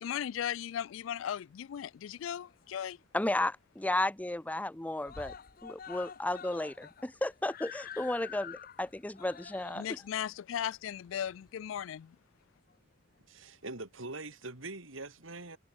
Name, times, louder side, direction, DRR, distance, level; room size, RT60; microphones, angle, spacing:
voice 1, 0.0-3.0 9.8-12.2, left 9 dB, 70° left, 0.3 m, -37 dB
Screaming, 2.1-3.1 3.4-3.5 3.8-3.9 4.2-4.7 5.0-11.8 12.7-12.8, left 7 dB, 50° left, 0.9 m, -48 dB
voice 2, 3.1-5.3 5.6-10.0, left 1 dB, 10° left, 0.5 m, -33 dB
voice 3, 13.3-15.6, right 2 dB, 80° right, 4.0 m, -43 dB
head